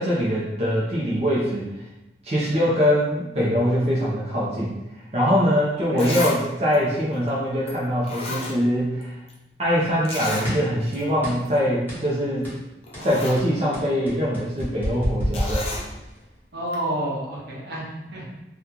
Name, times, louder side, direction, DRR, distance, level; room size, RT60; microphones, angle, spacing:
voice 1, 0.0-1.7 2.2-9.2 9.6-12.5 13.0-15.7, equal, 35° right, -7 dB, 0.6 m, -23 dB
Zipper (clothing), 6.0-6.4 6.7-6.8 7.7-7.8 8.0-9.0 9.3-9.4 10.1-10.5 10.9-11.0 11.4-11.6 12.4-12.5 12.8-13.4 15.3-15.9 16.7-16.8, left 2 dB, 35° left, 0.5 m, -32 dB
sound 1, 10.4-10.8 11.2-11.5 11.9-12.1 12.4-12.7 12.9-16.3, equal, 10° left, 1.2 m, -29 dB
voice 2, 16.5-17.8 18.1-18.4, right 1 dB, 70° right, -5 dB, 1.0 m, -30 dB
2.8 x 2.3 x 3.7 m, 0.95 s
head